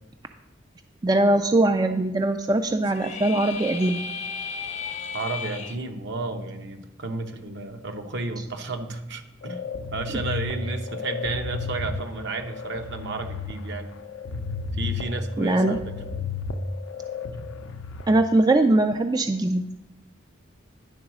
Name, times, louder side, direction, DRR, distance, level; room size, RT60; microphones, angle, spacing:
voice 1, 1.0-4.0 15.4-15.8 18.1-19.7, right 2 dB, 20° right, 7 dB, 0.3 m, -21 dB
sound 1, 2.8-5.7, left 6 dB, 35° left, 0.6 m, -34 dB
voice 2, 5.1-9.6 9.9-13.9 14.7-15.8, right 3 dB, 65° right, 5 dB, 0.9 m, -32 dB
sound 2, 9.4-18.0, left 4 dB, 80° left, 0.5 m, -33 dB
10.5 x 3.9 x 6.1 m, 0.94 s
head